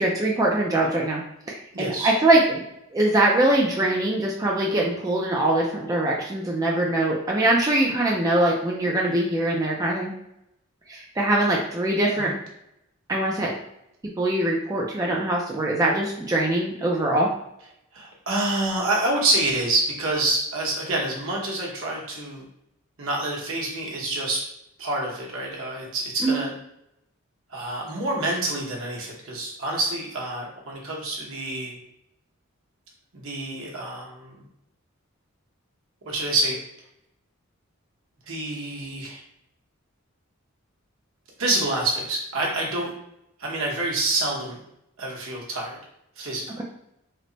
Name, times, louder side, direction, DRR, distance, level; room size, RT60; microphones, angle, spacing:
voice 1, 0.0-2.6 2.9-10.1 10.9-12.3 13.1-13.5 14.2-17.3 26.2-26.4, right 1 dB, 15° right, -3 dB, 0.3 m, -22 dB
voice 2, 1.7-2.1 12.1-12.3 17.9-22.5 23.0-24.4 24.8-26.5 27.5-31.8 33.1-34.4 36.1-36.6 38.3-39.2 41.4-42.9 43.4-44.6 45.0-45.8 46.2-46.4, right 2 dB, 65° right, -2 dB, 0.9 m, -27 dB
3.2 x 2.0 x 3.8 m, 0.79 s
head